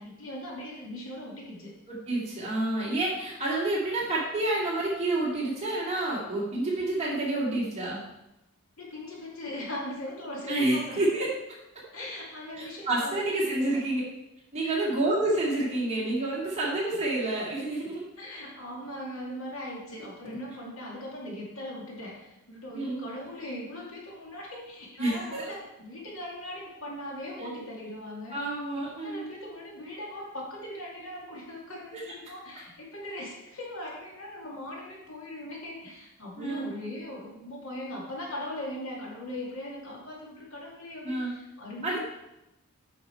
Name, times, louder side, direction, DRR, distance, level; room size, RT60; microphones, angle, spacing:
voice 1, 0.0-1.7 8.8-11.0 11.9-13.8 14.6-14.9 18.2-42.0, left 1 dB, 65° left, -3 dB, 2.4 m, -40 dB
voice 2, 1.9-8.0 10.5-11.3 12.5-14.0 14.5-18.1 22.7-23.0 25.0-25.5 28.3-29.3 31.9-32.0 36.4-36.7 41.0-41.3 41.8-42.0, right 2 dB, 30° right, -5 dB, 2.6 m, -29 dB
8.6 x 5.9 x 4.6 m, 0.91 s
head